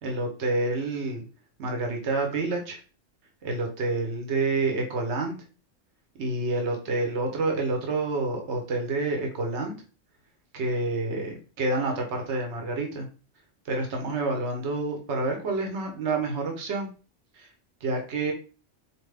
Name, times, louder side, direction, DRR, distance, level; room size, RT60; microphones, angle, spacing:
voice 1, 0.0-1.2 1.6-2.8 3.4-5.4 6.2-9.7 10.5-13.1 13.6-16.9 17.3-17.5 17.8-18.3, right 2 dB, 65° right, 2 dB, 1.2 m, -28 dB
4.4 x 2.8 x 3.3 m, 0.36 s
omnidirectional pair, 1.3 m